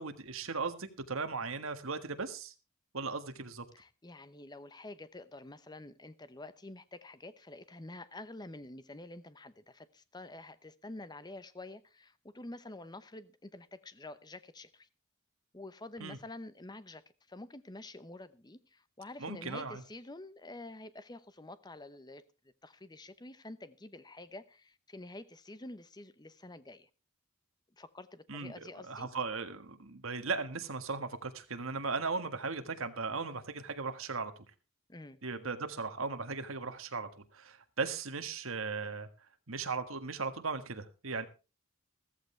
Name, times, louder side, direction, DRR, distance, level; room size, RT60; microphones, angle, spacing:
voice 1, 0.0-2.5 2.9-3.6 16.0-16.2 19.2-19.8 28.3-34.4 35.2-39.1 39.5-41.3, right 4 dB, 70° right, 1.6 m, -37 dB
voice 2, 3.7-14.9 15.5-22.2 22.6-26.9 27.8-29.1 34.9-35.2, left 2 dB, 20° left, 0.8 m, -48 dB
14.5 x 14.5 x 3.3 m
head